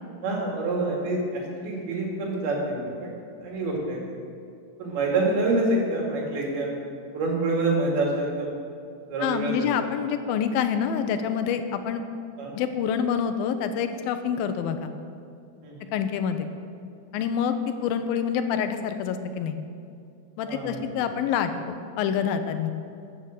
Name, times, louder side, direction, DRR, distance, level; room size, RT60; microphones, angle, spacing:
voice 1, 0.2-3.1 3.4-4.2 4.8-6.8 7.1-8.6 9.1-9.7 12.4-12.5 15.6-15.9 20.4-20.8, right 2 dB, 90° right, -2 dB, 4.3 m, -27 dB
voice 2, 9.2-12.0 12.5-14.9 15.9-16.5 17.1-19.6 20.4-22.7, left 7 dB, 85° left, 8 dB, 2.5 m, -27 dB
13.0 x 8.1 x 7.5 m, 2.5 s
omnidirectional pair, 4.3 m